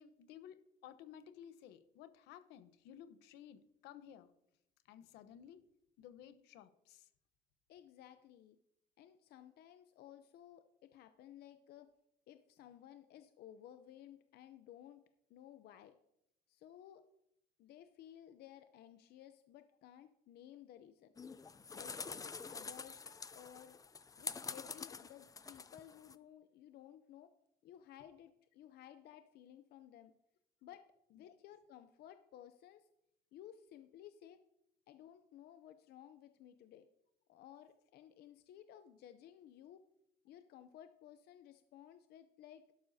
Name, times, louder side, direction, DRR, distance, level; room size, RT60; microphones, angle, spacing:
voice 1, 0.0-4.3 4.8-5.6 6.0-7.1 31.1-31.3, left 9 dB, 90° left, 11 dB, 0.9 m, -56 dB
voice 2, 7.7-8.6 9.0-11.9 12.3-15.0 15.3-16.0 16.5-17.0 17.6-21.1 21.7-23.8 24.2-27.3 27.6-30.1 30.6-32.9 33.3-34.4 34.9-36.9 37.3-39.8 40.2-42.7, left 11 dB, 70° left, 9 dB, 0.6 m, -57 dB
sound 1, 21.2-26.1, left 5 dB, 20° left, 0.5 m, -47 dB
12.0 x 11.5 x 2.7 m, 0.80 s
cardioid pair, 110°, 17 cm